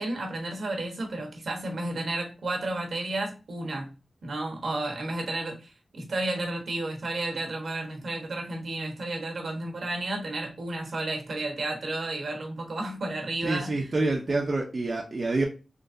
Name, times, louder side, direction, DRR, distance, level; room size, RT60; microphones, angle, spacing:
voice 1, 0.0-3.9 4.2-13.9, right 2 dB, 75° right, 2 dB, 1.2 m, -32 dB
voice 2, 13.4-15.4, right 2 dB, 50° right, -1 dB, 0.7 m, -27 dB
3.9 x 3.2 x 2.6 m, 0.31 s
wide cardioid pair, 70°, 0 cm